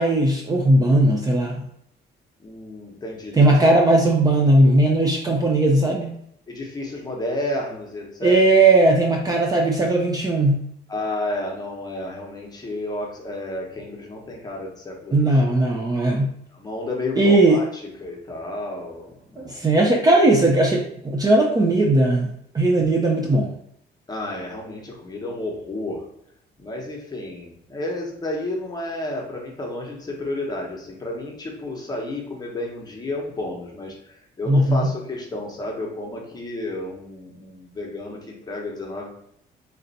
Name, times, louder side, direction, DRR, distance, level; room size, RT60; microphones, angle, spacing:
voice 1, 0.0-1.6 3.4-6.2 8.2-10.6 15.1-16.3 17.2-17.6 19.4-23.5 34.5-34.9, right 2 dB, 20° right, 0 dB, 0.5 m, -18 dB
voice 2, 2.4-3.5 6.5-8.4 10.9-15.4 16.5-17.7 18.0-19.7 24.1-26.0 26.6-39.1, left 1 dB, 20° left, -1 dB, 0.9 m, -31 dB
3.3 x 2.6 x 4.0 m, 0.71 s
cardioid pair, 145°, 19 cm